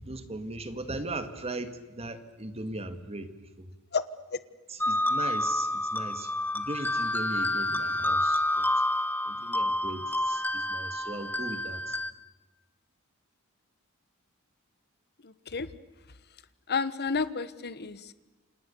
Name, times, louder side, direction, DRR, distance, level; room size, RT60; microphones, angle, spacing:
voice 1, 0.0-3.3 3.6-3.7 4.7-8.6 9.3-11.8, right 2 dB, 30° right, 9 dB, 2.0 m, -38 dB
sound 1, 4.8-12.1, left 1 dB, 10° left, 1.4 m, -29 dB
voice 2, 15.2-15.7 16.7-18.1, left 5 dB, 50° left, 14 dB, 1.3 m, -31 dB
29.0 x 27.0 x 7.0 m, 1.2 s
head